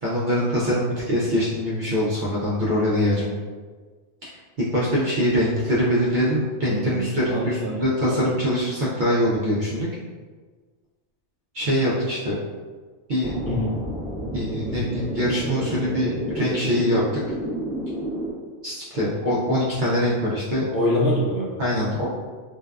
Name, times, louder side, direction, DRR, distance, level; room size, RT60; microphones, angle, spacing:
voice 1, 0.0-3.3 4.6-9.9 11.5-12.4 13.1-13.3 14.3-17.0 18.6-20.6 21.6-22.1, equal, 55° right, -7 dB, 0.6 m, -23 dB
voice 2, 6.7-7.0 7.3-8.2 13.5-13.8 20.7-21.5, left 1 dB, 60° left, -5 dB, 0.8 m, -25 dB
sound 1, 13.2-18.3, equal, 15° left, 0.3 m, -30 dB
2.6 x 2.2 x 2.3 m, 1.4 s
omnidirectional pair, 1.2 m